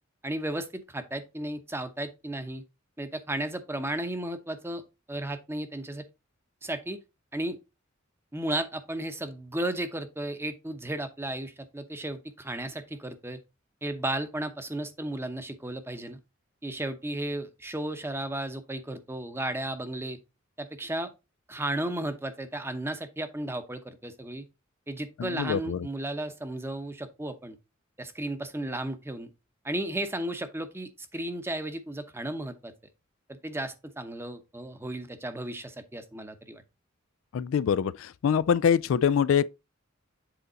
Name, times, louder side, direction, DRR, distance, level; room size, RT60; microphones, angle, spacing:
voice 1, 0.2-2.6 3.0-4.8 5.1-6.0 6.6-7.0 7.3-7.6 8.3-13.4 13.8-16.2 16.6-20.2 20.6-21.1 21.5-24.5 24.9-27.6 28.0-29.3 29.6-32.7 33.3-36.6, right 1 dB, 10° right, 0.8 m, -34 dB
voice 2, 25.2-25.9 37.3-39.5, left 7 dB, 75° left, 0.3 m, -24 dB
7.8 x 4.0 x 3.9 m
head